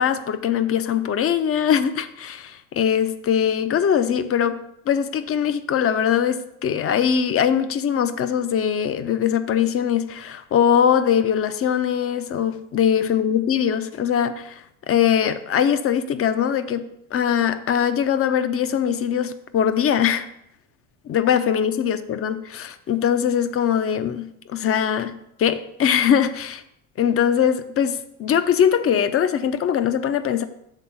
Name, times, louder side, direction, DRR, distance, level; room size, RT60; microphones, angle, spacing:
voice 1, 0.0-4.6 4.9-16.9 17.1-20.3 21.1-26.6 27.0-30.4, left 8 dB, 30° left, 12 dB, 0.6 m, -21 dB
7.0 x 3.8 x 5.6 m, 0.77 s
hypercardioid pair, 75°, 46 cm